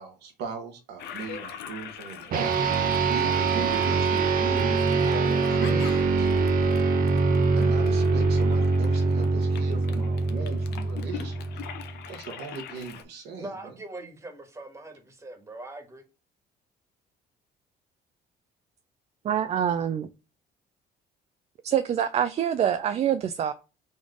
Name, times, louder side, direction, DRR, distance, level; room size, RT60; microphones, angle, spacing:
voice 1, 0.0-2.6 3.1-6.3 7.6-11.6 12.1-13.7, right 5 dB, 80° right, 1.4 m, -38 dB
Toilet flush, 1.0-13.0, left 9 dB, 75° left, 0.7 m, -43 dB
sound 1, 2.3-12.0, right 4 dB, 55° right, 0.9 m, -24 dB
voice 2, 13.4-16.0, right 2 dB, 15° right, 1.4 m, -41 dB
voice 3, 19.2-20.1 21.6-23.5, right 9 dB, 40° right, 0.4 m, -25 dB
4.1 x 3.2 x 3.7 m
cardioid pair, 110°, 17 cm